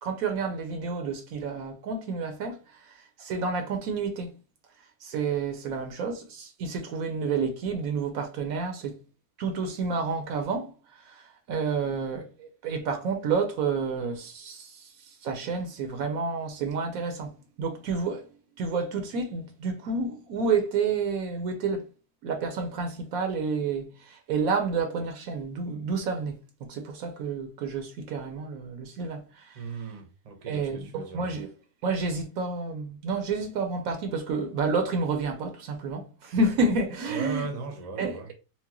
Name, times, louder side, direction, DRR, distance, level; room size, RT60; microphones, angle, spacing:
voice 1, 0.0-4.3 5.0-9.0 9.4-21.8 22.2-26.4 26.7-29.6 30.5-31.5 31.8-37.5 38.0-38.3, right 4 dB, 70° right, 1.1 m, -30 dB
voice 2, 29.5-31.4 37.1-38.3, right 4 dB, 35° right, 0.7 m, -37 dB
4.5 x 2.1 x 2.8 m
omnidirectional pair, 1.6 m